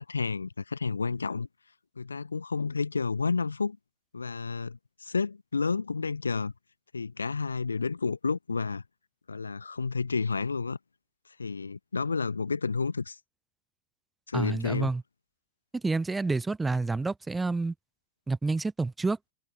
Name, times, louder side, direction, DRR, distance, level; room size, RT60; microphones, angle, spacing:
voice 1, 0.0-1.5 2.0-3.8 4.1-6.5 6.9-8.8 9.3-10.8 11.4-13.2 14.3-14.9, left 4 dB, 75° left, 1.0 m, -30 dB
voice 2, 14.3-15.0 15.7-17.7 18.3-19.2, right 3 dB, 10° right, 0.5 m, -28 dB
figure-of-eight pair, 90°, 0 cm